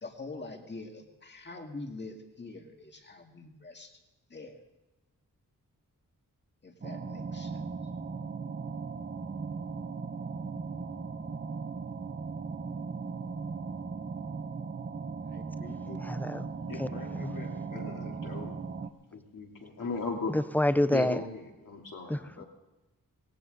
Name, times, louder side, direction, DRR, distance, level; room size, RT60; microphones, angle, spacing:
voice 1, 0.0-3.9 4.3-4.6 6.6-7.7 15.3-16.2, left 3 dB, 30° left, 3 dB, 1.9 m, -45 dB
sound 1, 6.8-18.9, right 5 dB, 30° right, 0.8 m, -38 dB
voice 2, 16.0-16.5 16.8-16.9 17.2-17.3 20.3-21.2 22.1-22.2, left 1 dB, 5° left, 14 dB, 0.4 m, -27 dB
voice 3, 16.7-18.6 19.1-20.3 20.9-22.4, left 3 dB, 65° left, 0 dB, 3.0 m, -38 dB
18.5 x 17.5 x 3.8 m, 1.1 s
wide cardioid pair, 150°, 35 cm